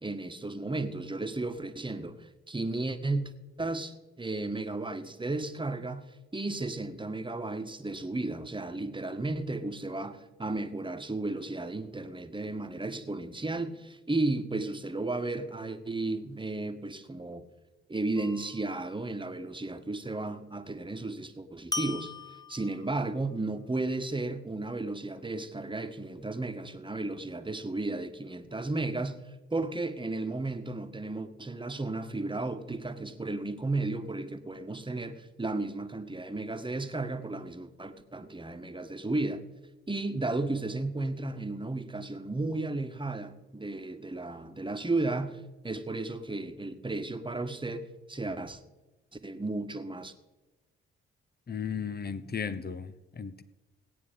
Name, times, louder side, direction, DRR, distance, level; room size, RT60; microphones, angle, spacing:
voice 1, 0.0-3.3 3.6-6.0 6.3-17.4 17.9-22.1 22.5-29.2 29.5-39.4 39.9-48.6 49.1-50.1, right 2 dB, 15° right, 1.6 m, -34 dB
sound 1, 18.2-18.8 21.7-23.1, left 3 dB, 10° left, 1.3 m, -39 dB
voice 2, 51.5-53.4, left 6 dB, 30° left, 1.0 m, -35 dB
17.5 x 9.3 x 5.3 m
hypercardioid pair, 40°, 31 cm